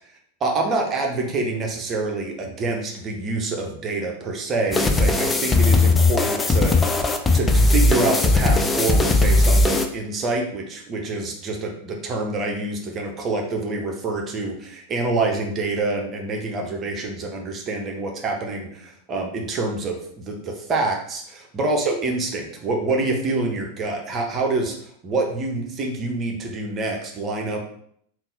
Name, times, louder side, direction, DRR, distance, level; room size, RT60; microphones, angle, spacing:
voice 1, 0.4-24.7 25.0-27.6, right 3 dB, 25° right, 1 dB, 0.9 m, -26 dB
sound 1, 4.7-9.9, left 2 dB, 15° left, 0.4 m, -18 dB
3.8 x 2.6 x 3.9 m, 0.66 s
figure-of-eight pair, 90°, 0 cm